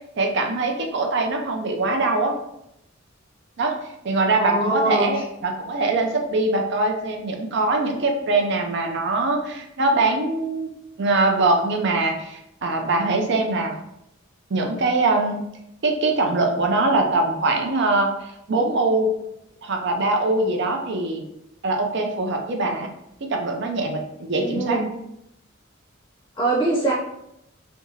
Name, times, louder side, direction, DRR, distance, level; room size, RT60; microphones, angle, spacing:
voice 1, 0.2-2.3 3.6-3.7 4.0-10.7 11.0-13.8 14.5-15.4 15.8-19.1 19.6-21.2 21.6-22.9 23.2-24.8, right 2 dB, 60° right, 3 dB, 0.5 m, -22 dB
voice 2, 4.4-5.2 24.3-24.9 26.4-26.9, right 2 dB, 20° left, -4 dB, 0.6 m, -23 dB
3.4 x 2.8 x 2.8 m, 0.82 s
head